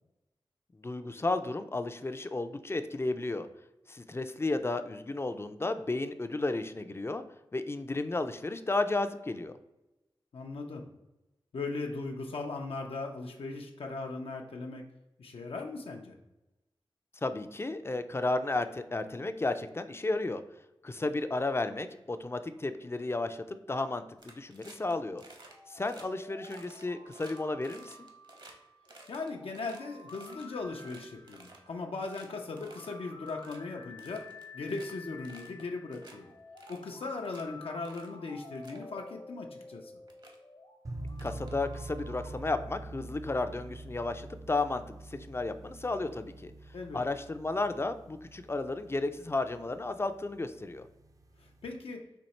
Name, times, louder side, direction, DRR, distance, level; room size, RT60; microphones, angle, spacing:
voice 1, 0.8-3.5 3.9-7.2 7.5-9.5 17.2-20.4 20.8-25.2 25.7-28.1 41.2-46.5 46.9-50.9, left 2 dB, 25° left, 10 dB, 0.4 m, -33 dB
voice 2, 10.3-10.9 11.5-14.8 15.2-16.2 29.1-34.3 34.5-36.3 36.7-39.9 46.7-47.0 51.4-52.1, left 3 dB, 80° left, 2 dB, 0.5 m, -38 dB
sound 1, 24.2-24.9 25.2-25.5 25.8-26.0 26.4-28.5 28.8-30.4 30.8-31.7 32.0-32.3 32.6-32.9 33.2-33.6 34.0-34.9 35.2-35.6 35.9-36.2 36.6-37.4 37.8-38.1 38.5-38.8 39.7-39.8 40.1-40.4 41.1-42.0, right 2 dB, 55° right, 0.9 m, -54 dB
sound 2, 25.2-42.4, left 3 dB, 60° left, 0.8 m, -52 dB
sound 3, 40.8-51.7, right 2 dB, 35° right, 0.4 m, -46 dB
4.4 x 2.8 x 4.1 m, 0.99 s
wide cardioid pair, 65°, 9 cm